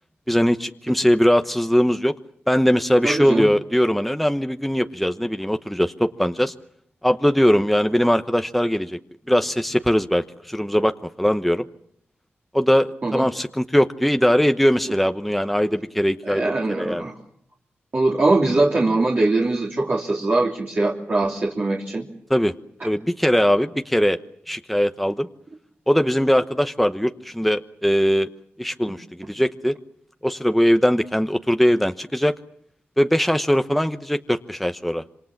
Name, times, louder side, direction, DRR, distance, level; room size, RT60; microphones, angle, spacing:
voice 1, 0.3-2.1 2.5-6.5 7.0-9.0 9.3-11.7 12.5-17.0 22.3-22.5 22.8-24.2 24.5-25.3 25.9-28.3 28.6-29.7 30.2-32.3 33.0-35.0, equal, ahead, 8 dB, 1.0 m, -20 dB
voice 2, 3.0-3.5 13.0-13.2 16.2-17.1 17.9-22.1 22.8-22.9, right 2 dB, 45° right, -3 dB, 3.2 m, -21 dB
27.0 x 24.0 x 7.3 m, 0.70 s
cardioid pair, 65°, 4 cm